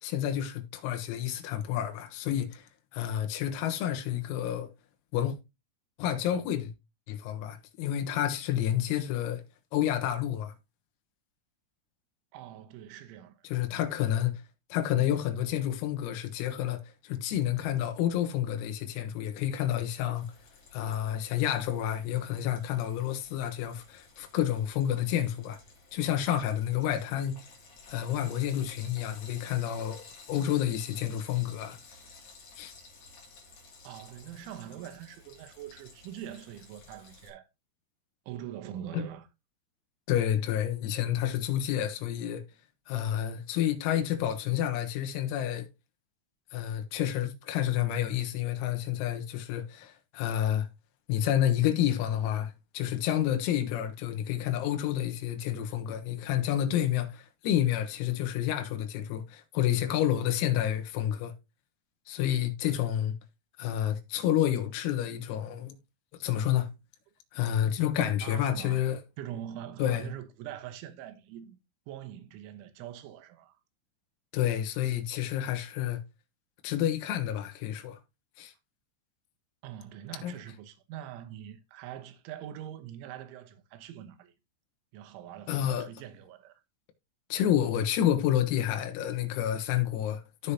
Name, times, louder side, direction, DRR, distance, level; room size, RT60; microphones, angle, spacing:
voice 1, 0.0-4.7 5.1-5.4 6.0-6.7 7.1-9.4 9.7-10.5 13.5-14.4 14.7-20.3 20.7-25.6 25.9-27.5 27.9-31.8 32.6-32.7 38.9-39.0 40.1-42.4 42.9-45.7 46.5-50.7 51.1-61.3 62.1-63.2 63.6-65.8 66.2-66.8 67.3-69.0 69.8-70.1 74.3-76.0 76.6-78.0 78.4-78.5 80.2-80.4 85.5-85.9 87.3-90.5, left 11 dB, 90° left, 4.0 m, -29 dB
voice 2, 12.3-13.5 13.7-13.8 33.8-37.5 38.3-39.3 68.0-68.9 69.2-71.6 71.9-73.6 79.6-84.3 84.9-86.6, right 11 dB, 75° right, 3.3 m, -43 dB
Frying (food), 20.1-37.3, left 3 dB, 50° left, 3.7 m, -53 dB
15.0 x 5.0 x 2.8 m
omnidirectional pair, 6.0 m